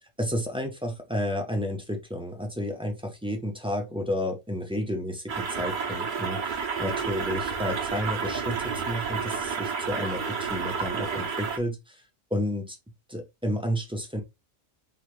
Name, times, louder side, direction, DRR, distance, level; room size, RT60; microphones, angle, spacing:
voice 1, 0.2-12.0 12.3-12.8 13.1-14.2, equal, 5° right, 3 dB, 0.6 m, -31 dB
sound 1, 5.3-11.6, right 5 dB, 45° right, 0.8 m, -30 dB
3.9 x 2.6 x 3.1 m, 0.22 s
omnidirectional pair, 1.3 m